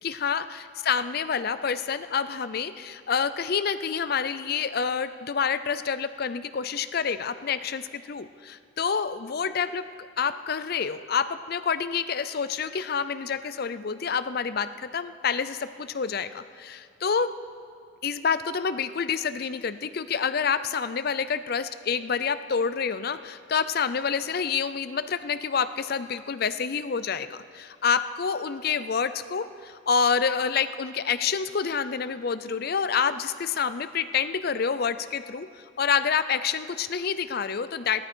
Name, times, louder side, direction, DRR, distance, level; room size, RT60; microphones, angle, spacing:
voice 1, 0.0-9.8 10.2-17.3 18.0-35.5 35.8-38.1, left 6 dB, 50° left, 13 dB, 0.5 m, -28 dB
17.0 x 13.5 x 4.4 m, 2.2 s
head